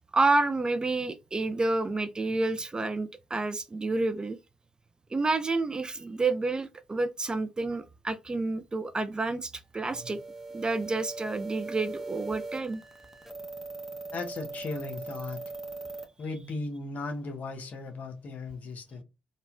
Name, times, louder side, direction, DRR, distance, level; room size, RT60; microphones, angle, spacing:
voice 1, 0.1-4.4 5.1-10.2 10.5-12.8, right 3 dB, 25° right, 0.4 m, -29 dB
sound 1, 9.9-16.1, right 3 dB, 5° right, 0.8 m, -40 dB
voice 2, 14.1-15.4 16.2-19.0, left 3 dB, 50° left, 0.8 m, -36 dB
4.0 x 2.1 x 2.3 m
hypercardioid pair, 50°, 3 cm